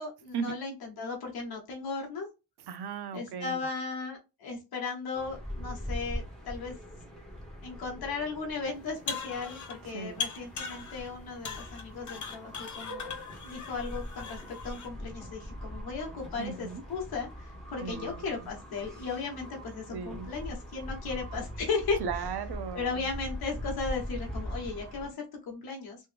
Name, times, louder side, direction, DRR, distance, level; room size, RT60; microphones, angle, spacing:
voice 1, 0.0-2.3 3.1-6.7 7.6-13.2 13.4-22.0 22.7-26.1, left 4 dB, 65° left, 1.3 m, -36 dB
voice 2, 2.7-3.6 9.9-10.2 16.4-16.8 17.8-18.5 19.9-20.3 22.0-23.0, right 6 dB, 75° right, 0.6 m, -37 dB
sound 1, 5.1-25.1, equal, ahead, 1.3 m, -42 dB
sound 2, 8.8-9.8 10.2-11.1 11.4-14.9, left 5 dB, 45° left, 0.9 m, -39 dB
3.2 x 3.0 x 3.4 m
wide cardioid pair, 130°, 40 cm